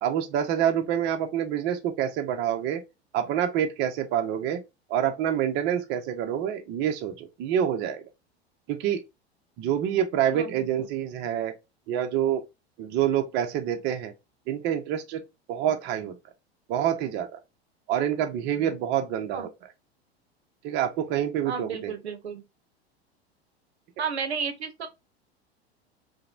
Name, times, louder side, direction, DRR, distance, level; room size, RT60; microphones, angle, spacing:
voice 1, 0.0-2.8 3.1-4.6 4.9-8.0 8.7-9.0 9.6-11.5 11.9-12.4 12.8-14.1 14.5-15.2 15.5-16.2 16.7-17.4 17.9-19.5 20.6-21.9, right 10 dB, 35° right, 0.5 m, -27 dB
voice 2, 10.3-10.9 19.3-19.5 21.4-22.4 24.0-24.9, right 6 dB, 80° right, 0.6 m, -33 dB
2.9 x 2.0 x 2.3 m
figure-of-eight pair, 85°, 32 cm